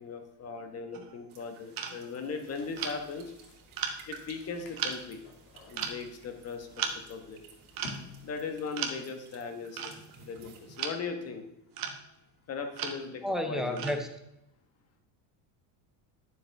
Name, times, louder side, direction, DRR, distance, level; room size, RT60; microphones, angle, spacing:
voice 1, 0.0-3.3 4.1-5.2 5.7-6.7 7.1-7.4 8.2-9.9 10.2-11.5 12.5-14.0, left 5 dB, 30° left, 6 dB, 1.2 m, -38 dB
sound 1, 0.9-1.2 1.8-2.0 2.8-3.0 3.8-4.0 4.8-5.0 5.7-6.0 6.7-7.0 7.7-8.1 8.8-9.1 9.7-10.3 10.8-10.9 11.7-12.1 12.7-13.0 13.8-14.1, right 7 dB, 45° right, 1.2 m, -35 dB
sound 2, 1.3-10.8, right 6 dB, 75° right, 2.9 m, -56 dB
sound 3, 2.4-8.7, left 3 dB, 60° left, 2.3 m, -52 dB
voice 2, 13.2-14.1, equal, ahead, 5 dB, 0.5 m, -31 dB
12.0 x 7.1 x 3.4 m, 0.82 s
cardioid pair, 155°, 50 cm